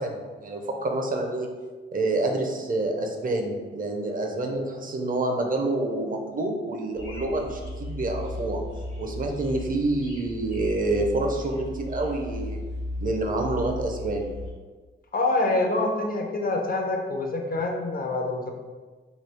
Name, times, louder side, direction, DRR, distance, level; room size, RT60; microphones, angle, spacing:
voice 1, 0.0-1.5 1.9-8.6 9.0-12.6 13.0-14.3, right 2 dB, 40° right, 2 dB, 0.6 m, -27 dB
sound 1, 6.9-14.5, left 1 dB, 80° left, 1.0 m, -36 dB
voice 2, 15.1-18.5, left 2 dB, 45° left, 2 dB, 0.5 m, -26 dB
3.1 x 2.3 x 3.3 m, 1.4 s
cardioid pair, 70°, 21 cm